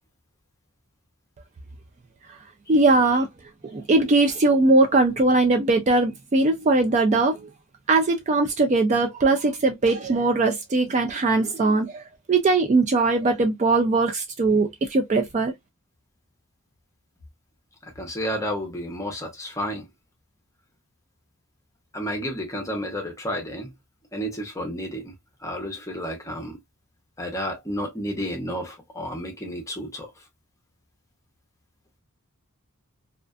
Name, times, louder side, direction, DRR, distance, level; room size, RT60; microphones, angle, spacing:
voice 1, 2.7-3.3 3.6-7.4 7.9-12.0 12.3-15.5, right 3 dB, 30° right, 0.3 m, -20 dB
voice 2, 17.8-19.9 21.9-23.7 24.1-25.1 25.4-26.6 27.2-30.1, equal, 15° left, 0.7 m, -31 dB
2.4 x 2.4 x 2.2 m
head